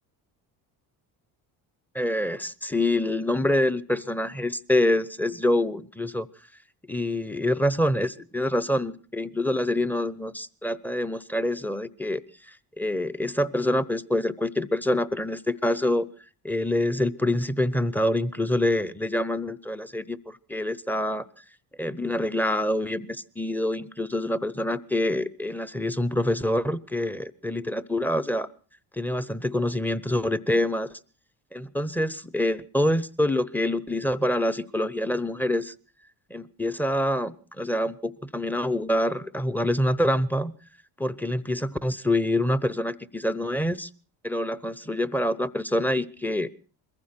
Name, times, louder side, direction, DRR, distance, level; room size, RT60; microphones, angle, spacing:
voice 1, 1.9-6.3 6.9-16.1 16.4-21.3 21.8-28.5 28.9-31.0 31.5-35.7 36.3-40.5 41.0-43.9 44.2-46.5, left 1 dB, 5° left, 17 dB, 0.7 m, -26 dB
21.5 x 15.0 x 4.3 m, 0.39 s
supercardioid pair, 75°, 43 cm